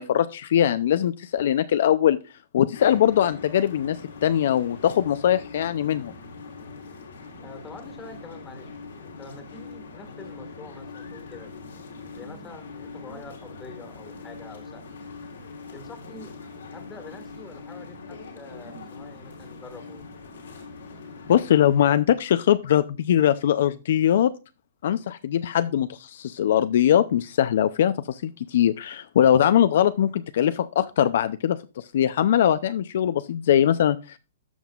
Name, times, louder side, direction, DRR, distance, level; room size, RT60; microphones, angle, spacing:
voice 1, 0.0-2.2 2.5-6.1 21.3-24.3 24.8-34.2, left 10 dB, 65° left, 12 dB, 0.5 m, -21 dB
sound 1, 2.7-21.8, left 4 dB, 90° left, 2.8 m, -42 dB
voice 2, 7.4-8.7 9.0-11.5 12.1-14.9 15.7-16.3 16.7-20.0, left 3 dB, 15° left, 7 dB, 1.6 m, -45 dB
13.5 x 5.4 x 2.4 m, 0.29 s
hypercardioid pair, 155°, 0 cm